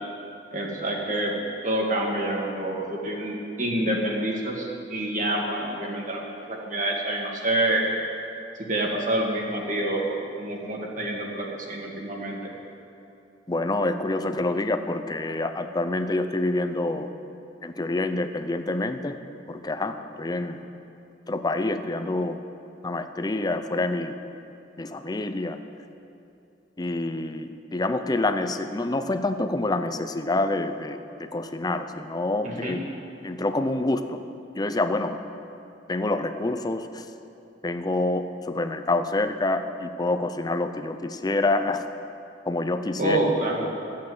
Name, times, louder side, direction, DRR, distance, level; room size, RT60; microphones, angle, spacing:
voice 1, 0.5-1.3 1.6-7.9 8.6-12.4 32.4-32.8 43.0-43.7, right 1 dB, 45° right, -1 dB, 2.1 m, -27 dB
voice 2, 13.5-17.1 17.6-19.2 19.5-20.6 21.3-22.4 22.8-24.1 24.8-25.6 26.8-32.8 33.2-34.2 34.6-35.2 35.9-37.1 37.6-41.9 42.5-43.2, left 2 dB, 20° left, 8 dB, 0.6 m, -27 dB
13.0 x 8.5 x 8.0 m, 2.8 s
head